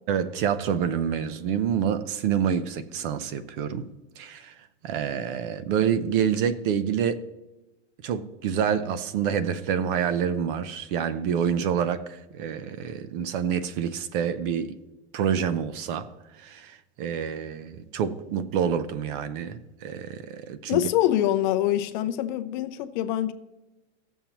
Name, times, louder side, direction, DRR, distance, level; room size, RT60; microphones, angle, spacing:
voice 1, 0.1-3.9 4.2-4.5 4.8-7.2 8.0-14.8 15.1-16.1 16.3-20.9, right 8 dB, 45° right, 0.7 m, -27 dB
voice 2, 20.7-23.3, left 13 dB, 40° left, 0.5 m, -25 dB
17.0 x 7.2 x 3.0 m
supercardioid pair, 155°, 36 cm